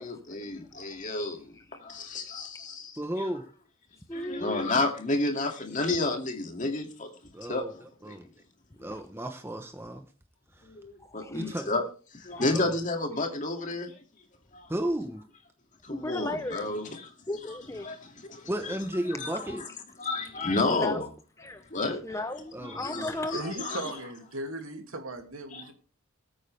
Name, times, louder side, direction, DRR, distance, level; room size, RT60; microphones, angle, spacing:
voice 1, 0.0-1.5 1.7-3.0 4.1-7.1 7.5-8.2 10.6-11.8 12.1-13.9 14.5-14.7 15.8-17.1 17.8-18.5 19.1-19.7 20.0-21.1 21.7-22.0 22.6-23.8 25.5-25.7, left 2 dB, 35° left, 2.4 m, -31 dB
voice 2, 3.0-3.5 7.3-8.3 8.8-10.0 10.6-10.7 11.3-11.7 12.5-12.7 14.7-15.2 18.5-19.6 22.5-23.2, right 1 dB, 10° right, 1.0 m, -34 dB
voice 3, 4.1-4.8 8.9-9.0 11.0-11.5 12.3-12.5 15.9-16.7 17.3-17.9 20.7-21.0 21.4-21.6 22.0-23.4, left 2 dB, 15° left, 0.7 m, -36 dB
voice 4, 23.3-25.7, right 1 dB, 80° right, 2.5 m, -37 dB
20.5 x 8.8 x 3.4 m
head